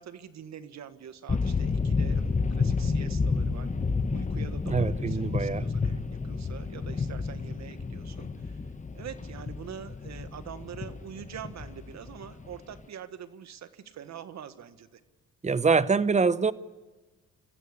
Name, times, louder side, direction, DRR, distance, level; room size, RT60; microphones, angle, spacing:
voice 1, 0.0-3.7 4.1-8.6 8.9-15.0, right 9 dB, 65° right, 1.7 m, -45 dB
sound 1, 1.3-12.8, left 4 dB, 25° left, 1.3 m, -30 dB
voice 2, 4.7-5.7 15.4-16.5, right 5 dB, 25° right, 0.9 m, -24 dB
26.0 x 15.0 x 8.4 m
cardioid pair, 90°, 30 cm